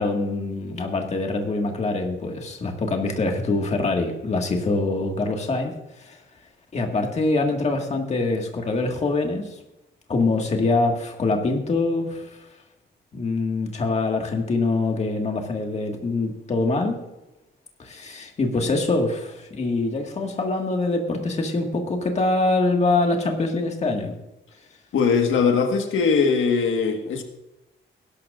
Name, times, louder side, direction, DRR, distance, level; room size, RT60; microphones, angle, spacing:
voice 1, 0.0-5.7 6.1-6.2 6.7-9.5 10.1-12.3 13.1-17.0 17.8-24.1, left 3 dB, 35° left, 2 dB, 1.7 m, -24 dB
voice 2, 24.9-27.2, left 5 dB, 85° left, 4 dB, 1.5 m, -20 dB
19.5 x 12.0 x 2.5 m, 0.95 s
wide cardioid pair, 170°, 20 cm